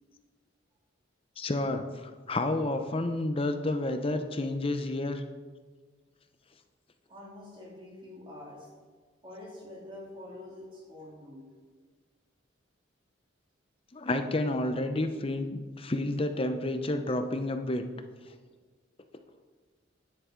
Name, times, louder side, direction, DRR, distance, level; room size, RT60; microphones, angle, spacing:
voice 1, 1.4-5.2 13.9-17.8, left 2 dB, 30° left, 7 dB, 0.7 m, -30 dB
voice 2, 7.1-8.7 9.2-11.5, left 1 dB, 25° right, -4 dB, 2.9 m, -46 dB
10.0 x 9.5 x 4.5 m, 1.4 s
head